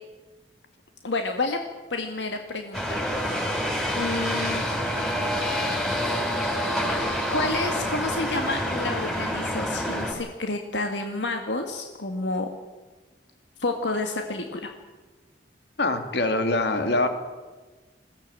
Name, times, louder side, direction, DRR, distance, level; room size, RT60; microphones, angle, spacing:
voice 1, 1.0-1.6 1.9-3.0 3.9-4.7 7.3-12.5 13.6-14.7, left 2 dB, 85° left, 4 dB, 2.0 m, -29 dB
sound 1, 2.7-10.1, equal, ahead, 5.4 m, -27 dB
voice 2, 15.8-17.1, left 2 dB, 70° left, 7 dB, 2.8 m, -23 dB
21.5 x 16.5 x 8.9 m, 1.3 s
head